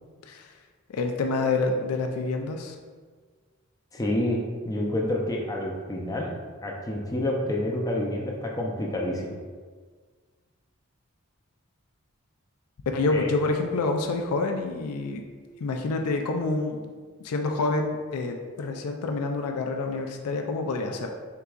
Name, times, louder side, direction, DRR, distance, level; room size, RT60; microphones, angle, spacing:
voice 1, 0.9-2.8 12.9-15.2 15.6-16.8 17.2-21.1, left 3 dB, 85° left, 3 dB, 0.4 m, -27 dB
voice 2, 3.9-6.3 6.6-9.3 13.1-13.3, left 1 dB, 15° left, -1 dB, 0.4 m, -28 dB
4.6 x 3.9 x 2.3 m, 1.5 s
head